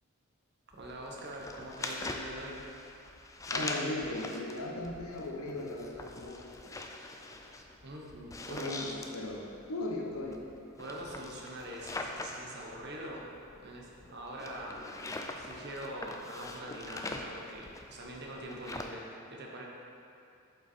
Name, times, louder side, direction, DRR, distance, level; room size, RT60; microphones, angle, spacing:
sound 1, 0.7-18.9, left 2 dB, 15° left, 0.3 m, -42 dB
voice 1, 0.7-2.6 7.8-8.7 10.8-13.3 13.6-14.8 15.3-19.6, right 1 dB, 50° right, -2 dB, 1.0 m, -43 dB
voice 2, 3.5-6.4 8.5-10.4, left 1 dB, 70° left, -1 dB, 1.0 m, -37 dB
7.6 x 5.5 x 4.4 m, 2.7 s
head